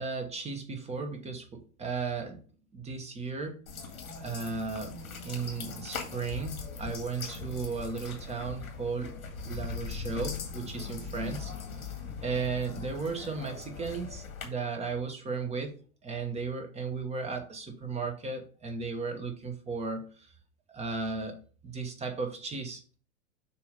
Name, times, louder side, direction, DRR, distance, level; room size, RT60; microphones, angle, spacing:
voice 1, 0.0-2.4 2.7-3.6 4.2-5.0 5.2-9.2 9.4-11.5 12.2-15.7 16.0-20.0 20.7-21.4 21.6-23.0, right 4 dB, 15° right, 4 dB, 1.2 m, -35 dB
sound 1, 3.7-14.4, left 5 dB, 90° left, 2.2 m, -40 dB
6.9 x 2.9 x 5.2 m, 0.40 s
hypercardioid pair, 120°, 41 cm